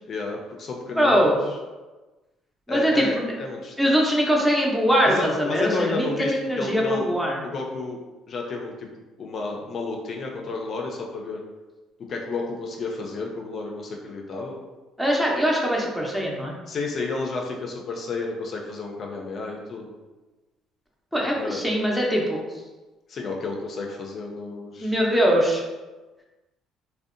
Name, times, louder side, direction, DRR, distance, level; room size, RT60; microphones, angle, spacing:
voice 1, 0.1-1.4 2.7-3.8 5.0-7.1 7.4-8.0 8.3-8.9 9.2-11.4 12.1-14.6 16.7-19.9 21.3-21.6 23.1-25.0, left 3 dB, 50° left, 0 dB, 0.4 m, -31 dB
voice 2, 1.0-1.4 2.7-3.3 3.8-7.4 15.0-16.6 21.1-22.4 24.8-25.6, equal, 5° right, -2 dB, 0.5 m, -22 dB
2.6 x 2.1 x 2.4 m, 1.2 s
cardioid pair, 95°, 0 cm